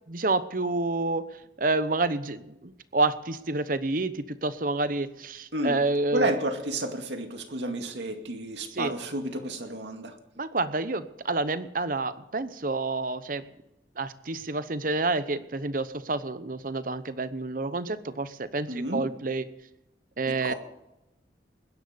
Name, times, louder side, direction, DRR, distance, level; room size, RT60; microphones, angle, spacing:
voice 1, 0.1-1.2 1.6-6.4 8.7-8.9 10.4-13.4 14.0-19.5 20.2-20.5, right 2 dB, 50° right, 13 dB, 0.9 m, -29 dB
voice 2, 6.1-10.1 18.7-19.0 20.3-20.5, right 1 dB, 80° right, 5 dB, 2.3 m, -31 dB
20.5 x 10.5 x 5.2 m, 0.90 s
head